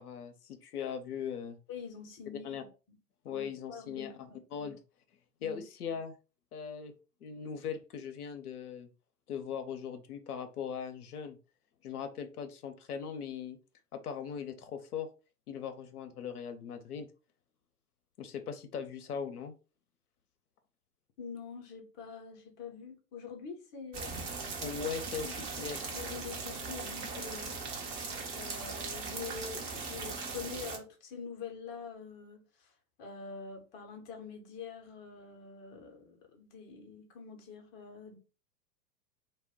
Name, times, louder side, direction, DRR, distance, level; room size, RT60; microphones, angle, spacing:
voice 1, 0.0-1.6 2.4-2.6 3.2-4.1 4.5-4.8 5.4-6.1 6.5-6.9 7.2-8.9 9.3-11.4 11.8-13.6 13.9-15.1 15.5-17.1 18.2-19.5 24.6-25.8, left 7 dB, 70° left, 0.6 m, -39 dB
voice 2, 1.7-3.0 3.3-4.7 5.4-5.6 21.2-24.5 25.2-25.7 25.9-27.9 28.3-38.2, left 5 dB, 20° left, 0.6 m, -46 dB
sound 1, 23.9-30.8, right 4 dB, 30° right, 0.7 m, -39 dB
2.1 x 2.1 x 3.5 m
figure-of-eight pair, 100°, 47 cm